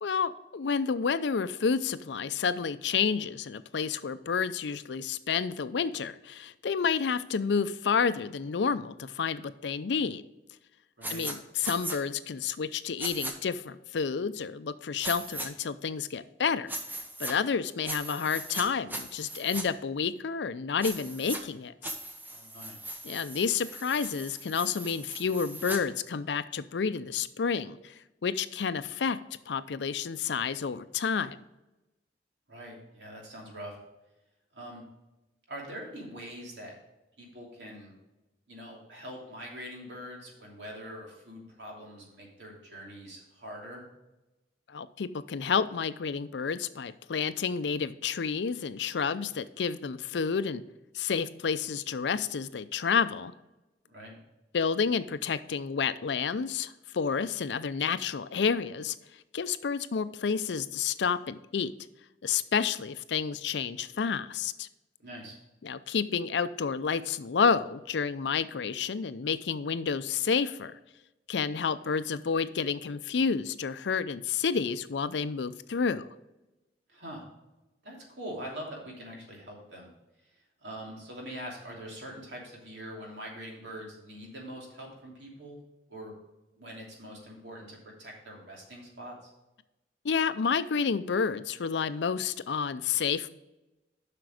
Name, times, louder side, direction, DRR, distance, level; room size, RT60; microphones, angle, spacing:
voice 1, 0.0-10.2 11.1-16.8 17.2-21.7 23.0-27.9 28.2-29.2 29.5-31.4 44.7-50.6 50.9-53.3 54.5-59.0 59.3-61.7 62.2-64.7 65.6-70.8 71.3-76.1 90.0-93.3, left 6 dB, 80° left, 14 dB, 0.5 m, -30 dB
Accum Stutter, 11.0-11.3 11.6-12.0 13.0-13.3 15.0-15.5 16.7-17.3 17.8-18.6 18.9-19.6 20.8-21.4 21.8-25.8, right 1 dB, 10° right, 1.0 m, -38 dB
voice 2, 22.3-22.8 32.5-33.8 34.5-34.8 35.5-36.7 37.2-38.0 38.5-43.8 53.9-54.1 65.0-65.4 76.9-77.2 77.8-79.9 80.6-85.6 85.9-86.1 86.6-89.3, equal, 75° right, -2 dB, 2.8 m, -43 dB
7.7 x 5.9 x 4.9 m, 0.99 s
head